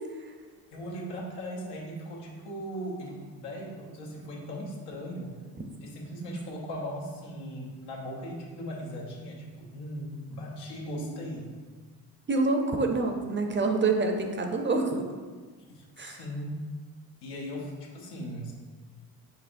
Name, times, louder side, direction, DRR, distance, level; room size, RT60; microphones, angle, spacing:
voice 1, 0.7-5.4 5.8-11.5 15.7-16.6 17.2-18.5, equal, 90° left, -2 dB, 1.0 m, -38 dB
voice 2, 12.3-15.1 16.0-16.2, right 3 dB, 30° right, 4 dB, 0.5 m, -27 dB
5.7 x 3.4 x 2.5 m, 1.5 s
cardioid pair, 75°, 40 cm